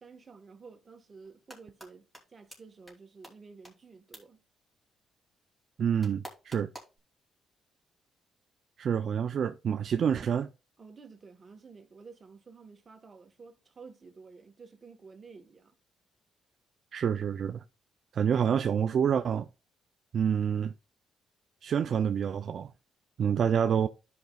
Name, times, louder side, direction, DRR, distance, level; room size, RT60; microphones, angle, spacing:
voice 1, 0.0-4.4 10.8-15.7, right 4 dB, 35° right, 1.3 m, -52 dB
sound 1, 1.2-1.9 2.1-2.2 2.5-2.6 2.9-3.0 3.2-3.3 3.6-3.7 4.1-4.2 6.0-7.0, right 1 dB, 5° left, 2.6 m, -46 dB
voice 2, 5.8-6.7 8.8-10.5 16.9-17.6 18.1-19.5 20.1-20.7 21.6-22.7 23.2-23.9, right 8 dB, 60° right, 0.4 m, -27 dB
13.0 x 5.1 x 2.3 m
cardioid pair, 90°, 0 cm